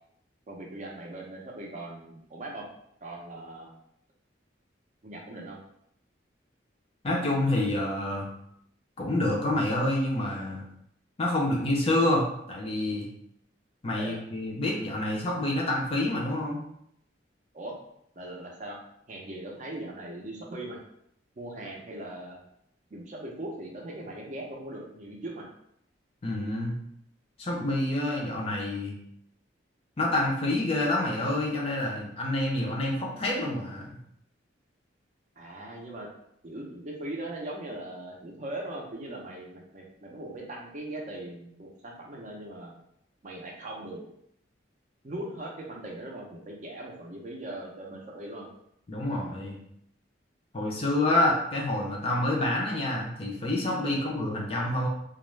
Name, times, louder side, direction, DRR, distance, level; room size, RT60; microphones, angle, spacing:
voice 1, 0.5-2.7 3.0-3.7 5.0-5.6 14.0-14.2 17.5-17.7 18.2-18.8 19.1-20.8 21.4-22.4 22.9-25.5 35.4-36.1 36.4-42.7 43.2-44.0 45.0-48.5 53.9-54.1, right 1 dB, 40° right, -1 dB, 0.5 m, -40 dB
voice 2, 7.0-8.3 9.0-10.6 11.2-13.1 13.8-16.6 26.2-26.8 27.4-28.9 30.0-33.9 48.9-49.6 50.5-54.9, left 1 dB, 30° left, -2 dB, 0.5 m, -27 dB
2.3 x 2.0 x 3.1 m, 0.74 s
head